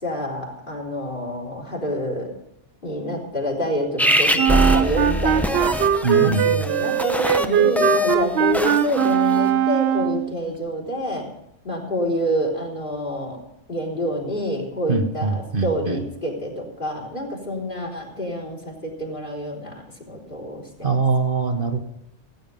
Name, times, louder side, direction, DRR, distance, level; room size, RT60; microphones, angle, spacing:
voice 1, 0.0-2.3 2.8-5.8 6.1-11.3 11.6-13.4 13.7-21.0, equal, 45° left, 0 dB, 3.7 m, -27 dB
sound 1, 4.0-9.5, equal, ahead, 0.8 m, -23 dB
Wind instrument woodwind instrument, 4.4-10.3, right 10 dB, 65° right, 0.9 m, -20 dB
voice 2, 6.0-6.7 14.9-16.0 20.8-21.8, right 4 dB, 50° right, 4 dB, 1.3 m, -22 dB
17.0 x 9.6 x 5.4 m, 0.81 s
omnidirectional pair, 1.2 m